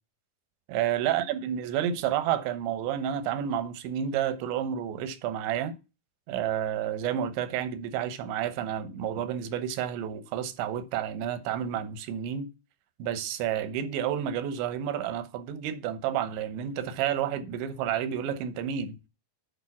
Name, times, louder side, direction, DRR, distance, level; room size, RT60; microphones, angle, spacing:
voice 1, 0.7-5.7 6.3-12.5 13.0-19.0, right 9 dB, 85° right, 3.2 m, -30 dB
9.3 x 4.7 x 5.9 m
omnidirectional pair, 5.0 m